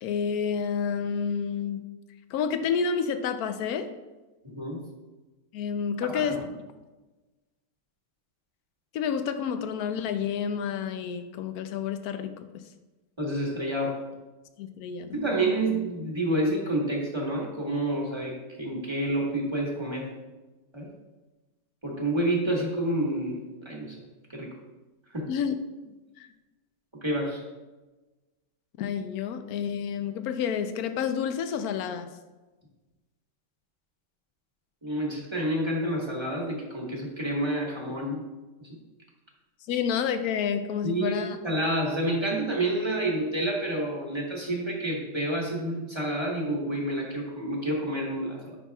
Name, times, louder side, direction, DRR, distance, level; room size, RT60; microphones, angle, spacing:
voice 1, 0.0-1.8 2.3-3.9 5.5-6.4 8.9-12.6 14.6-15.1 25.3-25.5 25.9-26.3 28.8-32.1 39.7-41.4, left 7 dB, 70° left, 8 dB, 1.0 m, -29 dB
voice 2, 4.4-4.8 6.1-6.4 13.2-14.0 15.1-20.1 20.7-20.9 21.8-24.0 24.3-24.5 25.1-25.3 27.0-27.4 34.8-38.2 38.6-38.8 40.8-48.6, right 1 dB, 15° right, -3 dB, 1.2 m, -29 dB
11.5 x 5.8 x 2.3 m, 1.1 s
omnidirectional pair, 1.8 m